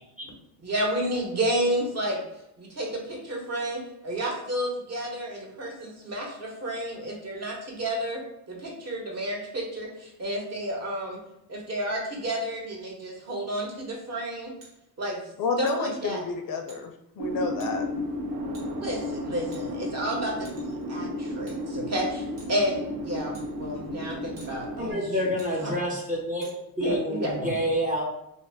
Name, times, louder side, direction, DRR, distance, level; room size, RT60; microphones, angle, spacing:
voice 1, 0.6-2.2 2.6-8.2 8.5-11.2 11.5-14.5 15.0-15.2 15.6-16.2 18.7-25.7 26.8-27.6, right 1 dB, 35° right, -1 dB, 1.0 m, -31 dB
sound 1, 14.6-14.7 15.7-15.9 16.7-16.8 17.6-17.7 18.5-18.7 19.5-20.0 20.5-20.8 21.5-21.6 22.4-22.6 23.3-23.5 24.4-24.5 25.4-25.5 26.4-26.6, right 2 dB, 75° right, 1.2 m, -49 dB
voice 2, 15.4-17.9, left 3 dB, 50° left, 5 dB, 0.5 m, -30 dB
sound 2, 17.2-24.9, left 1 dB, 55° right, 0.7 m, -33 dB
voice 3, 24.8-26.5 26.8-28.0, equal, 20° right, -3 dB, 0.6 m, -28 dB
2.5 x 2.3 x 3.3 m, 0.85 s
supercardioid pair, 90°, 43 cm